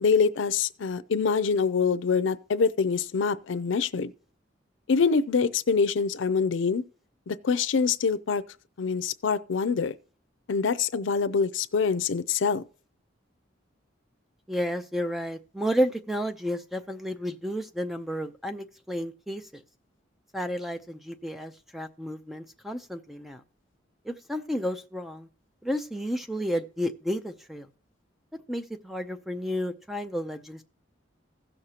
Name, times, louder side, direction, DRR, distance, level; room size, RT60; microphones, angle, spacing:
voice 1, 0.0-4.1 4.9-6.8 7.3-8.4 8.8-9.9 10.5-12.6, left 5 dB, 85° left, 0.5 m, -25 dB
voice 2, 14.5-19.6 20.3-23.4 24.0-25.3 25.6-27.7 28.5-30.6, equal, ahead, 0.5 m, -31 dB
16.5 x 6.5 x 2.9 m
head